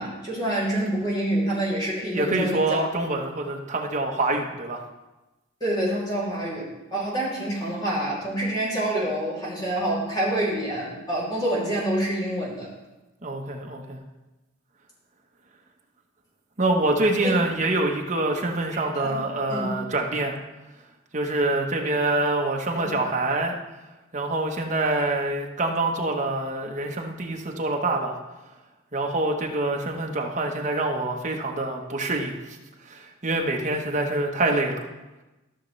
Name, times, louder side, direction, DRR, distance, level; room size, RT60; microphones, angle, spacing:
voice 1, 0.0-2.8 5.6-12.7 17.2-17.3 18.9-19.2 19.5-19.8 22.7-22.9, right 1 dB, 20° left, -6 dB, 2.7 m, -27 dB
voice 2, 2.1-4.8 13.2-14.0 16.6-20.4 21.1-23.6 24.1-28.2 28.9-32.6 32.8-34.9, right 2 dB, 40° right, 2 dB, 1.0 m, -25 dB
13.5 x 6.5 x 3.2 m, 1.1 s
head